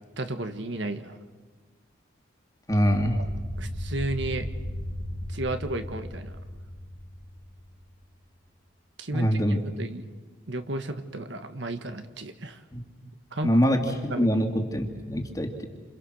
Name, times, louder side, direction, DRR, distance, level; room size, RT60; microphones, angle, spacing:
voice 1, 0.2-1.2 3.6-4.5 5.3-6.4 9.0-10.0 10.5-12.6 13.3-13.5 14.1-14.3, right 2 dB, 65° right, 8 dB, 1.6 m, -33 dB
voice 2, 2.7-3.2 9.1-9.6 12.7-12.8 13.4-15.7, equal, 20° left, 3 dB, 2.5 m, -24 dB
sound 1, 2.8-8.0, equal, 35° right, 3.6 m, -36 dB
29.0 x 27.5 x 6.5 m, 1.3 s
head